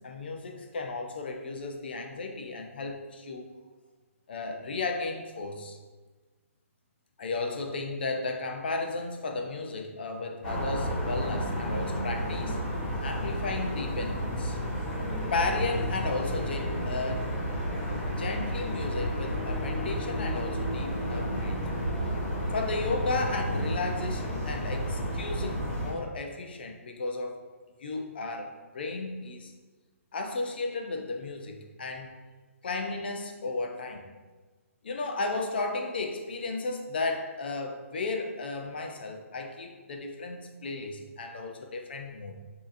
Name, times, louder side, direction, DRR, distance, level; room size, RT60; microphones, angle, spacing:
voice 1, 0.0-3.4 4.3-5.8 7.2-12.6 13.0-14.6 15.3-17.3 18.2-21.6 22.5-27.4 27.8-29.5 30.1-32.1 32.6-34.1 34.8-42.3, left 3 dB, 40° left, 3 dB, 0.5 m, -34 dB
sound 1, 10.4-25.9, equal, 25° left, 1.4 m, -31 dB
6.4 x 2.8 x 2.5 m, 1.3 s
hypercardioid pair, 175°, 8 cm